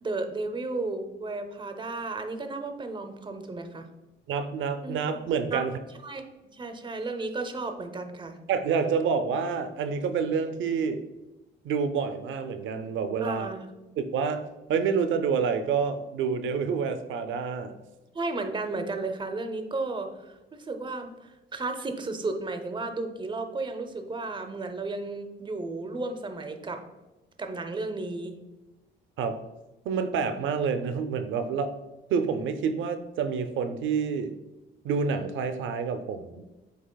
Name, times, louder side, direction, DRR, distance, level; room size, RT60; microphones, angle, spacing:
voice 1, 0.0-3.9 4.8-5.0 5.5-5.6 6.0-6.2 6.5-8.4 13.2-13.6 18.1-26.8 27.4-28.4, right 3 dB, 25° right, 6 dB, 0.6 m, -33 dB
voice 2, 4.3-5.7 8.5-11.0 11.6-13.6 14.0-14.4 14.7-17.8 29.2-29.4 29.8-31.7 32.1-34.3 34.8-36.4, right 6 dB, 75° right, 9 dB, 0.5 m, -28 dB
8.1 x 2.8 x 2.2 m, 1.1 s
cardioid pair, 90°, 20 cm